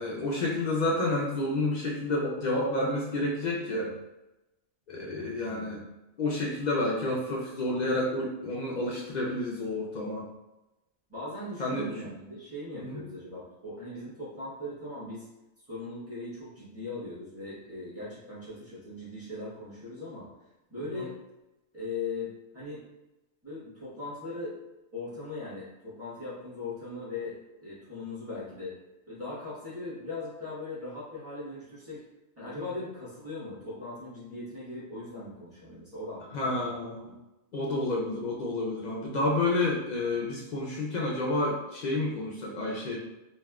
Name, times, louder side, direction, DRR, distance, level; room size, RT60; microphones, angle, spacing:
voice 1, 0.0-3.9 4.9-5.8 6.2-10.2 11.6-12.1 12.8-13.0 21.0-21.1 32.6-32.7 36.3-37.1 37.5-43.0, left 2 dB, 55° left, -3 dB, 0.5 m, -30 dB
voice 2, 5.4-5.8 11.1-15.3 15.7-20.3 20.7-21.1 21.7-22.8 23.4-24.6 24.9-28.8 29.1-32.0 32.4-36.7, left 2 dB, 15° right, -11 dB, 1.2 m, -39 dB
3.3 x 2.6 x 2.3 m, 0.99 s
omnidirectional pair, 1.2 m